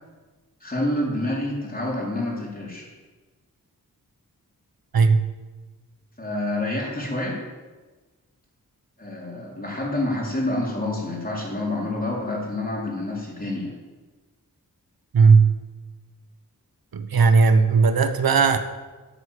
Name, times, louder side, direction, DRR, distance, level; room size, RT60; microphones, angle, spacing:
voice 1, 0.6-2.9 6.2-7.4 9.0-13.7, left 1 dB, 25° left, -3 dB, 4.5 m, -28 dB
voice 2, 4.9-5.3 15.1-15.5 16.9-18.6, right 5 dB, 85° right, 9 dB, 1.1 m, -16 dB
11.0 x 8.0 x 8.4 m, 1.3 s
wide cardioid pair, 60°, 35 cm